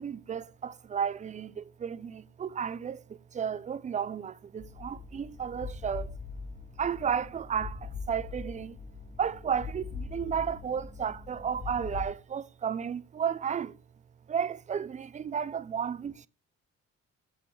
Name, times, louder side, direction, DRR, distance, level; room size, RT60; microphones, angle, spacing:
voice 1, 0.0-6.2 6.8-8.8 9.2-13.8 14.3-16.3, right 7 dB, 25° right, 0.4 m, -33 dB
sound 1, 4.6-12.1, left 5 dB, 25° left, 1.2 m, -42 dB
7.5 x 6.1 x 3.7 m
cardioid pair, 90°, 30 cm